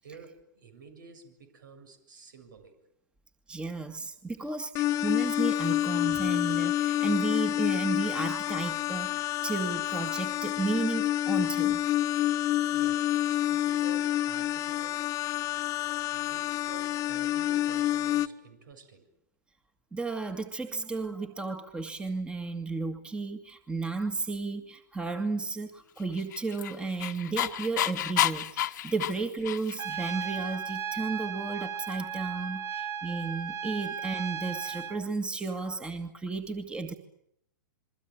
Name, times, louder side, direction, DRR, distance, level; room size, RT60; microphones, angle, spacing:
voice 1, 0.0-2.7 4.4-4.5 12.4-15.1 16.1-19.1 32.6-32.7, right 5 dB, 75° right, 8 dB, 7.4 m, -51 dB
voice 2, 3.5-11.8 15.8-16.0 19.9-36.9, right 3 dB, 10° right, 7 dB, 2.1 m, -33 dB
sound 1, 4.7-18.3, left 13 dB, 30° left, 1.2 m, -28 dB
Dog, 26.1-30.0, left 13 dB, 65° left, 1.4 m, -30 dB
Trumpet, 29.8-35.0, right 7 dB, 25° right, 1.9 m, -36 dB
27.5 x 23.5 x 8.9 m, 0.75 s
hypercardioid pair, 120°, 11 cm